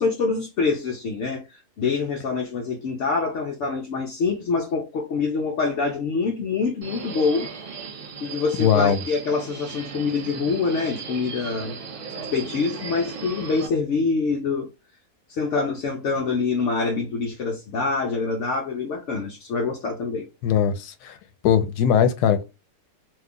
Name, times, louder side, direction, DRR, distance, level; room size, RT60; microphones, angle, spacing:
voice 1, 0.0-7.5 8.2-11.8 12.2-14.7 15.3-20.3, left 4 dB, 65° left, 0.8 m, -25 dB
Subway metro underground, 6.8-13.7, right 5 dB, 55° right, 1.1 m, -36 dB
voice 2, 8.6-9.0 20.4-21.1 21.4-22.4, left 8 dB, 80° left, 1.1 m, -20 dB
2.8 x 2.3 x 3.6 m
omnidirectional pair, 1.7 m